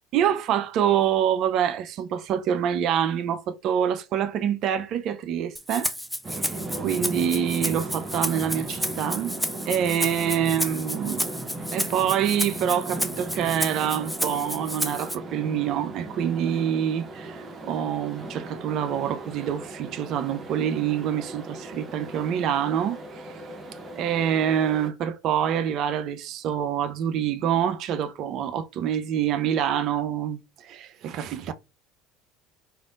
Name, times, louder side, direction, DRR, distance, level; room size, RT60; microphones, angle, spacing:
voice 1, 0.1-5.9 6.3-9.4 9.7-11.3 11.7-23.0 24.0-31.5, right 9 dB, 55° right, 0.5 m, -26 dB
Rattle (instrument), 5.6-15.2, equal, ahead, 0.5 m, -31 dB
sound 1, 6.2-24.9, right 2 dB, 35° right, 0.8 m, -37 dB
3.4 x 2.5 x 2.4 m
figure-of-eight pair, 65°, 0 cm